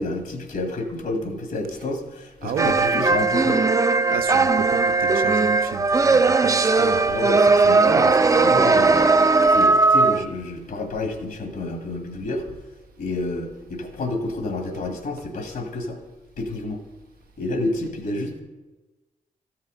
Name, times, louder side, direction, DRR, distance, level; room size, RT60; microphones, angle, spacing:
voice 1, 0.0-3.7 4.0-4.1 7.0-12.5 13.0-16.0 16.4-16.8 17.4-18.4, left 2 dB, 75° left, 4 dB, 1.8 m, -29 dB
voice 2, 2.4-2.8 4.1-7.0, right 8 dB, 85° right, 10 dB, 0.5 m, -33 dB
sound 1, 2.6-10.2, right 3 dB, 20° right, 0.4 m, -18 dB
13.0 x 5.7 x 5.1 m, 1.1 s
cardioid pair, 60°, 15 cm